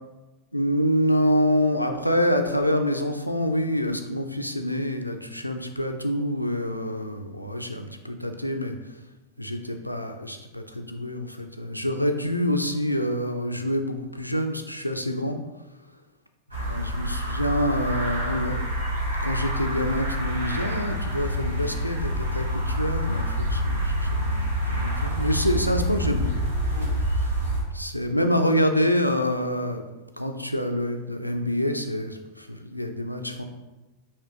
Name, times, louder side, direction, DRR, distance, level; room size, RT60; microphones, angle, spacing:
voice 1, 0.5-8.7 9.4-15.4 16.5-18.6 19.2-26.5 27.7-29.8 30.2-33.4, equal, 90° left, 5 dB, 0.3 m, -26 dB
sound 1, 16.5-27.6, equal, 85° right, 1.1 m, -27 dB
4.8 x 2.9 x 2.9 m, 1.1 s
figure-of-eight pair, 90°, 0 cm